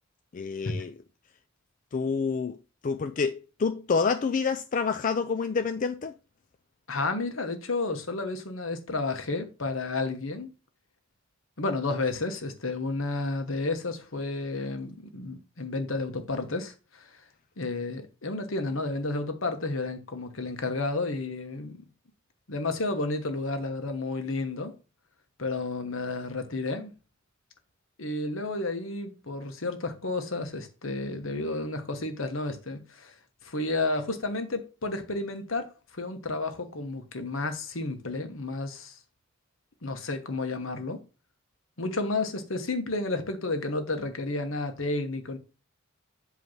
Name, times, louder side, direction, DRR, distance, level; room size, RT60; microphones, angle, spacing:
voice 1, 0.3-0.9 1.9-2.6 2.8-6.1, left 5 dB, 40° left, 0.4 m, -28 dB
voice 2, 6.9-10.5 11.6-17.1 17.6-21.9 22.5-24.7 25.4-26.9 28.0-33.1 33.4-35.7 36.0-39.0 39.8-41.0 41.8-45.4, left 2 dB, 70° left, 1.3 m, -31 dB
8.0 x 3.2 x 5.6 m
head